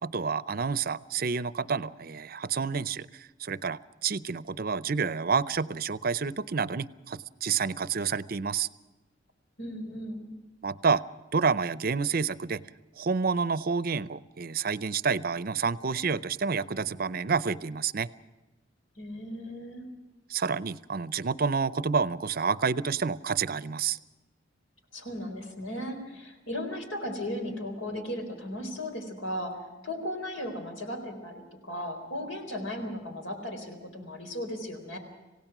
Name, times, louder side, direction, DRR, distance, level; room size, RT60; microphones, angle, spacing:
voice 1, 0.0-8.7 10.6-11.0 11.3-12.6 13.0-18.1 20.3-24.0, right 5 dB, 50° right, 17 dB, 0.6 m, -29 dB
voice 2, 9.6-10.3 19.0-19.9 24.9-29.5 29.8-35.0, left 1 dB, 80° left, 6 dB, 4.3 m, -36 dB
27.0 x 17.0 x 6.1 m, 1.1 s
head